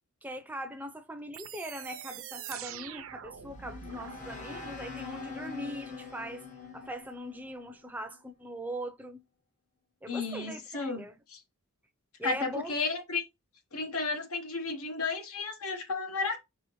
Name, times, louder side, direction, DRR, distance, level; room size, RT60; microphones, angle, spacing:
voice 1, 0.2-6.4 6.7-9.2 10.0-11.2 12.2-12.7, right 1 dB, 10° right, 0.5 m, -41 dB
sound 1, 1.3-4.2, right 10 dB, 70° right, 0.5 m, -44 dB
sound 2, 3.0-8.2, left 4 dB, 35° left, 0.9 m, -44 dB
voice 2, 10.1-11.4 12.2-13.2 13.7-16.4, left 4 dB, 85° left, 1.1 m, -33 dB
4.9 x 3.4 x 3.0 m
head